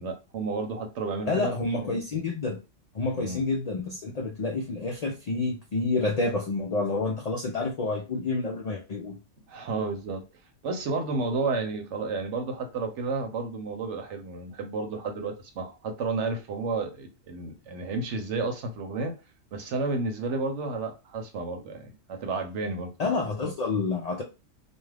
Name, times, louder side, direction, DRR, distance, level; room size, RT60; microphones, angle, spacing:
voice 1, 0.0-1.5 3.1-3.4 9.5-10.3 10.6-19.1 19.5-22.9, right 3 dB, 70° right, 1.0 m, -31 dB
voice 2, 1.3-2.6 2.9-9.2 23.0-24.2, left 3 dB, 80° left, 0.3 m, -29 dB
2.4 x 2.3 x 3.2 m
omnidirectional pair, 1.3 m